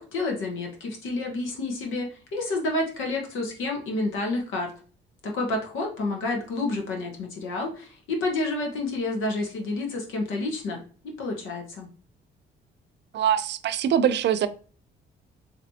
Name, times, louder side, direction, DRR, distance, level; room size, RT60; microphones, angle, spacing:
voice 1, 0.0-4.7 5.2-10.8 11.2-11.9, left 2 dB, 90° left, 1.3 m, -29 dB
voice 2, 13.1-14.5, right 9 dB, 60° right, 0.4 m, -23 dB
4.1 x 3.2 x 2.8 m
cardioid pair, 90°, 20 cm